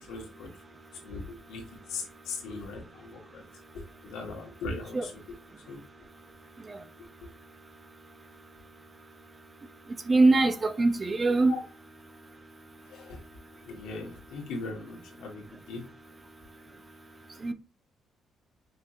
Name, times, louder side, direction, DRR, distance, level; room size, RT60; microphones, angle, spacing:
voice 1, 0.1-0.5 1.0-1.6 1.9-3.4 4.0-5.0 5.7-5.8 11.5-11.6 12.9-13.2 13.7-15.4 15.7-15.8, left 3 dB, 85° left, 1.4 m, -39 dB
voice 2, 10.1-11.5 17.4-17.5, right 3 dB, 25° right, 0.6 m, -22 dB
5.5 x 2.8 x 2.4 m
cardioid pair, 105°, 0 cm